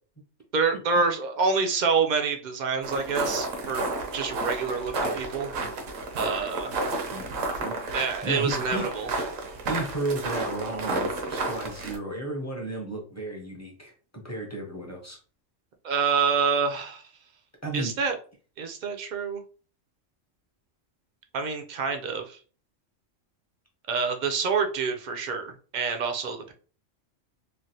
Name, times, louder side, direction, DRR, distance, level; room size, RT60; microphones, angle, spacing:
voice 1, 0.5-3.8 4.1-5.5 6.1-6.7 7.9-9.1 15.8-17.1 17.7-18.2 18.6-19.4 21.3-22.4 23.9-26.5, right 5 dB, 55° right, 5 dB, 0.5 m, -27 dB
sound 1, 2.8-12.0, right 3 dB, 80° right, 1.1 m, -31 dB
voice 2, 7.6-9.1 9.6-15.2 17.6-17.9, right 2 dB, 15° left, -1 dB, 0.6 m, -34 dB
3.2 x 2.4 x 2.7 m, 0.39 s
omnidirectional pair, 1.3 m